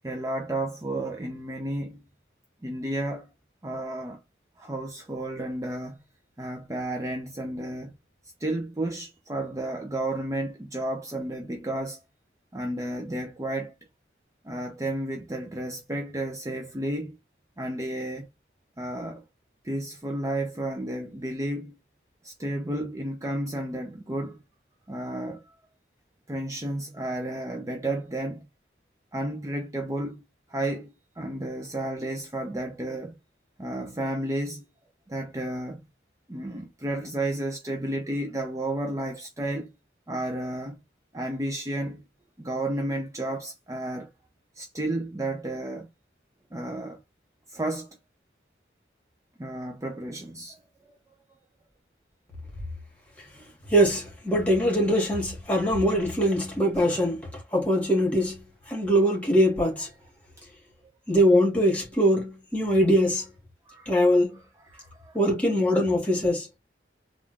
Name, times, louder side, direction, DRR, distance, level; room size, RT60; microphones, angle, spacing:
voice 1, 0.0-2.0 2.6-3.3 3.6-4.2 4.6-6.0 6.4-7.9 8.4-12.0 12.5-13.7 14.4-17.2 17.6-18.3 18.8-19.2 19.6-21.8 22.2-24.4 24.9-25.4 26.3-28.5 29.1-30.2 30.5-33.2 33.6-34.6 35.1-35.8 36.3-39.7 40.1-40.8 41.1-42.0 42.4-44.1 44.6-45.9 46.5-47.0 47.5-47.9 49.4-50.9 56.8-56.9 63.7-63.9 64.7-65.2, right 1 dB, 20° right, 0.5 m, -32 dB
voice 2, 53.7-59.9 61.1-63.3 63.9-64.4 65.1-66.5, equal, 10° left, 1.8 m, -22 dB
3.6 x 2.4 x 3.2 m
head